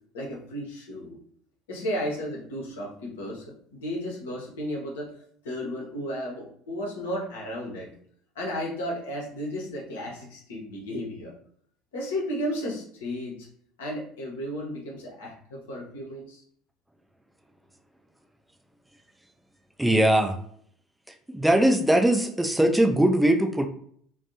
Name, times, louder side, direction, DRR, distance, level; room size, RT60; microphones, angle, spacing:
voice 1, 0.1-1.2 1.7-8.0 8.3-11.3 11.9-13.5 13.8-16.4, equal, 70° left, -2 dB, 0.7 m, -34 dB
voice 2, 19.8-20.3 21.3-23.7, right 1 dB, 5° right, 4 dB, 0.3 m, -21 dB
2.5 x 2.1 x 2.7 m, 0.62 s
figure-of-eight pair, 65°, 0 cm